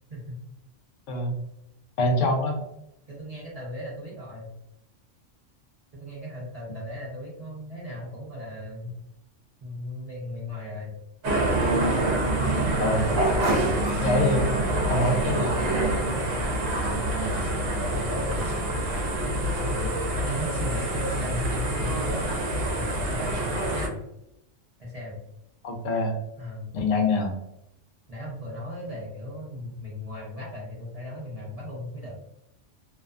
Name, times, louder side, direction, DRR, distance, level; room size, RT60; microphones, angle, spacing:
voice 1, 2.0-2.6 12.8-13.1 14.0-14.5 14.9-15.5 19.8-19.9 25.6-26.2 26.7-27.3, left 2 dB, 90° left, 2 dB, 1.0 m, -24 dB
voice 2, 3.1-4.5 5.9-8.9 9.6-10.9 16.9-17.5 17.9-18.5 19.5-22.4 22.7-24.0 24.8-25.2 26.4-26.9 28.1-32.2, left 1 dB, 40° right, -5 dB, 0.6 m, -36 dB
sound 1, 11.2-23.9, right 1 dB, 75° right, 0.9 m, -26 dB
2.7 x 2.1 x 2.4 m, 0.83 s
omnidirectional pair, 1.3 m